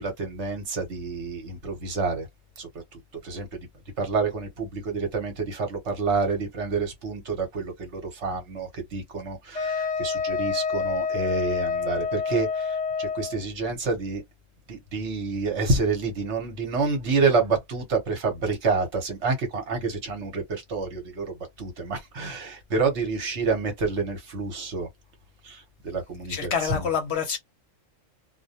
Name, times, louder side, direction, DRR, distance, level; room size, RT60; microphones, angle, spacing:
voice 1, 0.0-2.3 2.6-3.6 4.0-14.2 14.7-24.9 25.4-26.9, right 4 dB, 60° right, 1.1 m, -28 dB
Wind instrument woodwind instrument, 9.5-13.4, left 5 dB, 80° left, 0.3 m, -28 dB
voice 2, 26.3-27.4, left 7 dB, 60° left, 0.9 m, -27 dB
2.4 x 2.1 x 2.7 m
omnidirectional pair, 1.3 m